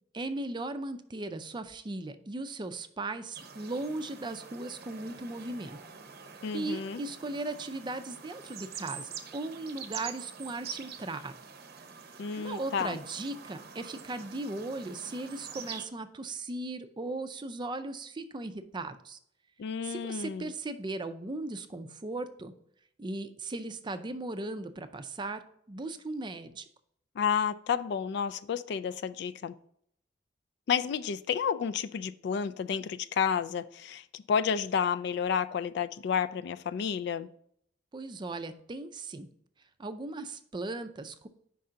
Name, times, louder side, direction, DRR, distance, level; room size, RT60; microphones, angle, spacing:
voice 1, 0.1-5.8 6.5-11.4 12.4-19.2 19.8-22.5 23.0-25.4 25.7-26.7 37.9-39.3 39.8-41.3, right 2 dB, 25° right, 10 dB, 0.4 m, -37 dB
sound 1, 3.3-15.8, right 6 dB, 55° right, 0.7 m, -46 dB
voice 2, 6.4-7.0 12.2-13.0 19.6-20.5 27.2-29.6 30.7-37.3, left 7 dB, 65° left, 12 dB, 0.3 m, -31 dB
5.3 x 3.8 x 5.6 m, 0.67 s
head